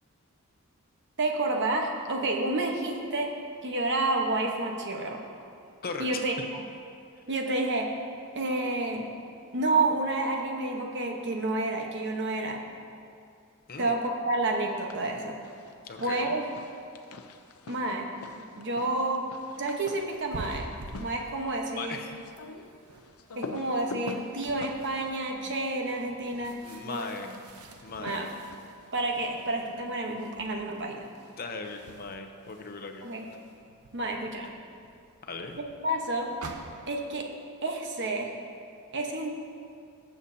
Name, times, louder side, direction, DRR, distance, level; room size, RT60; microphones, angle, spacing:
voice 1, 1.2-3.3 3.6-5.2 6.0-6.6 7.3-7.9 8.3-9.1 9.5-12.6 13.8-15.4 16.0-16.4 17.7-18.1 18.6-19.3 19.6-20.7 21.0-22.0 23.3-26.6 26.8-27.4 28.0-28.3 28.9-31.1 33.0-33.3 33.9-34.5 35.6-36.3 36.9-37.3 37.6-38.3 38.9-39.3, right 2 dB, 55° right, 2 dB, 1.1 m, -29 dB
voice 2, 5.8-6.2 13.7-13.9 15.8-16.3 21.8-22.2 26.6-27.3 27.8-28.3 31.4-33.0 35.2-35.6, left 4 dB, 45° left, 5 dB, 0.7 m, -38 dB
sound 1, 14.6-15.1 15.4-26.4 27.7-28.9, left 3 dB, 75° left, 0.6 m, -45 dB
sound 2, 19.4-37.1, right 2 dB, 90° right, 0.8 m, -49 dB
19.5 x 7.0 x 2.8 m, 2.4 s
head